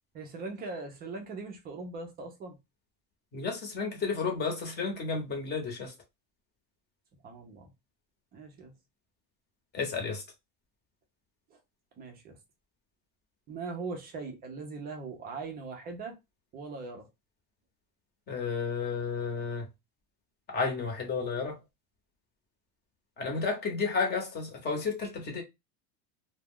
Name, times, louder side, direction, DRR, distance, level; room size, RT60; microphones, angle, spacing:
voice 1, 0.1-2.6 7.2-7.7 8.3-8.7 12.0-12.4 13.5-16.2 16.5-17.1, right 3 dB, 20° right, 0.4 m, -40 dB
voice 2, 3.3-5.9 9.7-10.2 18.3-19.7 20.5-21.6 23.2-25.4, left 4 dB, 20° left, 0.7 m, -32 dB
2.2 x 2.1 x 3.5 m
supercardioid pair, 145°, 48 cm